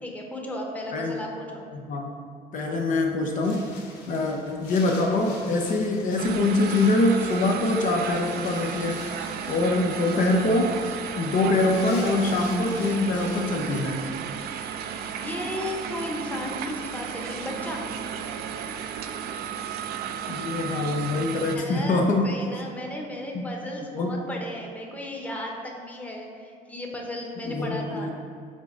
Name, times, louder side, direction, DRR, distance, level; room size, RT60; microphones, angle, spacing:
voice 1, 0.0-1.7 15.2-17.8 21.5-28.1, left 1 dB, 10° left, 0 dB, 0.9 m, -34 dB
voice 2, 1.7-2.2 2.5-3.7 4.1-9.0 9.5-10.8 11.1-14.0 20.3-22.3 23.3-23.5 23.9-24.2 27.5-28.1, left 2 dB, 50° left, 1 dB, 0.7 m, -24 dB
Wind, 2.6-13.8, left 3 dB, 85° left, 1.1 m, -46 dB
sound 1, 6.2-21.6, right 7 dB, 70° right, 0.5 m, -34 dB
5.4 x 3.9 x 5.0 m, 2.4 s
cardioid pair, 110°, 17 cm